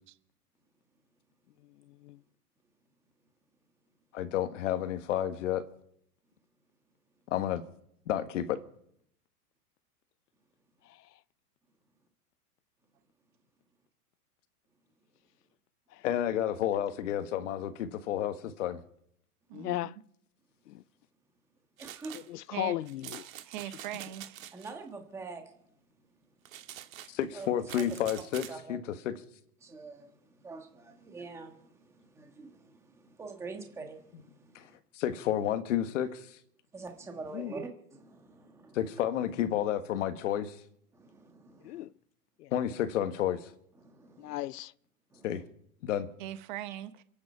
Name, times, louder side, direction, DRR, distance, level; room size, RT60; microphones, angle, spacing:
voice 1, 1.9-2.2 10.9-11.0 15.9-16.0 19.5-19.9 20.7-20.8 22.1-23.3 37.3-37.5 41.6-41.9 42.4-42.5 44.2-44.7, left 15 dB, 80° left, 0.6 m, -36 dB
voice 2, 4.1-5.6 7.3-7.6 8.1-8.6 16.0-18.8 27.1-29.1 34.1-34.2 34.5-34.7 34.9-36.4 38.7-40.6 42.5-43.5 45.2-45.4 45.8-46.1, left 10 dB, 50° left, 1.5 m, -31 dB
voice 3, 19.5-19.9 22.5-22.8 23.4-24.4 46.2-47.0, right 13 dB, 30° right, 1.0 m, -40 dB
voice 4, 21.8-22.2 24.5-25.4 27.3-27.5 28.5-28.8 29.6-30.1 30.4-31.5 32.2-32.5 33.2-34.0 36.7-38.8 40.9-41.8 43.8-44.4 45.1-45.2, right 3 dB, 5° right, 1.4 m, -44 dB
sound 1, 21.8-22.3 22.9-24.7 26.5-28.6, right 11 dB, 60° right, 1.6 m, -46 dB
27.5 x 9.5 x 5.6 m
supercardioid pair, 165°, 47 cm